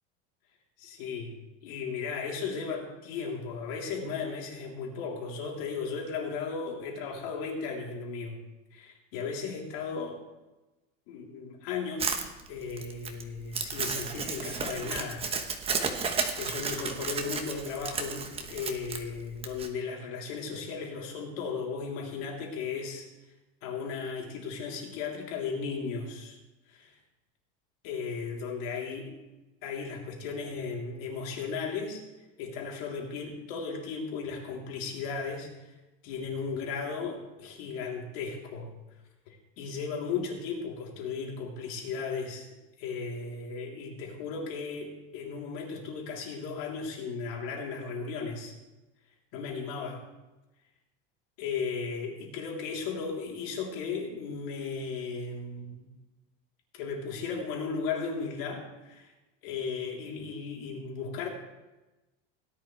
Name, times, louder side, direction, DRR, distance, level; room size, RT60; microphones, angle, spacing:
voice 1, 0.8-8.4 8.7-10.2 11.1-12.1 12.5-15.3 15.6-15.9 16.4-23.1 23.6-26.4 26.7-26.9 27.8-29.1 29.6-32.0 32.4-35.7 36.0-38.7 39.3-42.5 42.8-48.5 49.3-50.0 51.4-55.9 56.7-59.1 59.4-61.3, left 5 dB, 70° left, -1 dB, 3.4 m, -36 dB
Crumpling crinkling, 12.0-19.7, right 5 dB, 20° right, 1.1 m, -33 dB
17.5 x 11.0 x 3.3 m, 1.1 s
supercardioid pair, 150°, 30 cm